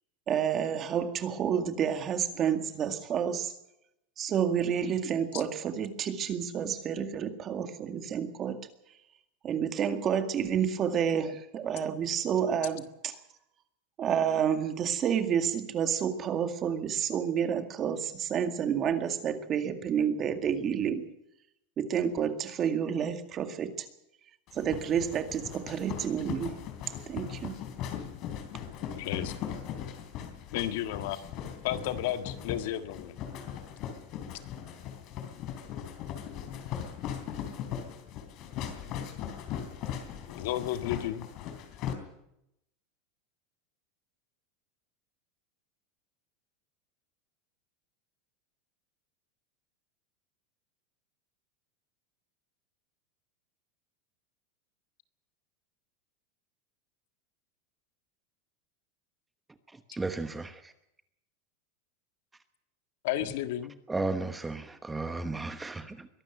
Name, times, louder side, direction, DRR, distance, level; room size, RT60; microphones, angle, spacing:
voice 1, 0.3-3.5 4.2-8.6 9.4-13.1 14.0-21.0 21.8-23.9 24.5-26.5 27.1-27.5, right 8 dB, 30° right, 8 dB, 2.1 m, -29 dB
sound 1, 24.5-41.9, left 9 dB, 45° left, 3.5 m, -39 dB
voice 2, 29.0-29.6 30.5-31.2 31.6-33.2 40.3-41.3 63.0-63.8, left 12 dB, 70° left, 9 dB, 1.7 m, -33 dB
voice 3, 59.7-60.7 63.9-66.1, right 3 dB, 10° right, 9 dB, 1.1 m, -34 dB
22.5 x 12.5 x 9.4 m, 0.83 s
supercardioid pair, 145°, 0 cm